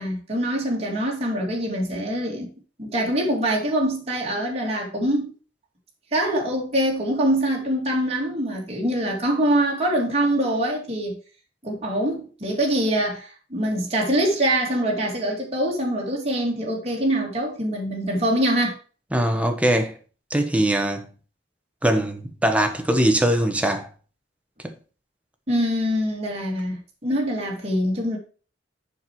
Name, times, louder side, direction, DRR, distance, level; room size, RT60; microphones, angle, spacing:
voice 1, 0.0-2.5 2.8-5.3 6.1-11.2 11.6-18.8 25.5-28.2, right 1 dB, 35° right, 2.5 m, -24 dB
voice 2, 19.1-19.9 20.3-21.0 21.8-23.9 24.6-24.7, right 1 dB, 5° right, 1.1 m, -21 dB
7.1 x 6.0 x 4.7 m
head